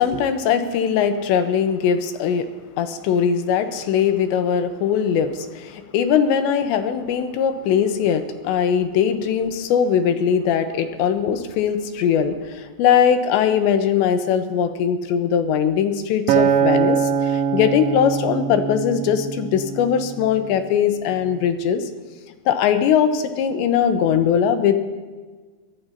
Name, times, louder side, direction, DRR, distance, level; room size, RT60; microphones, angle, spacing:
voice 1, 0.0-2.5 2.8-21.8 22.5-24.8, left 8 dB, 90° left, 8 dB, 3.2 m, -20 dB
Acoustic guitar, 16.3-20.6 21.2-21.5, right 7 dB, 90° right, 3.2 m, -23 dB
23.0 x 18.0 x 2.8 m, 1.4 s
omnidirectional pair, 5.1 m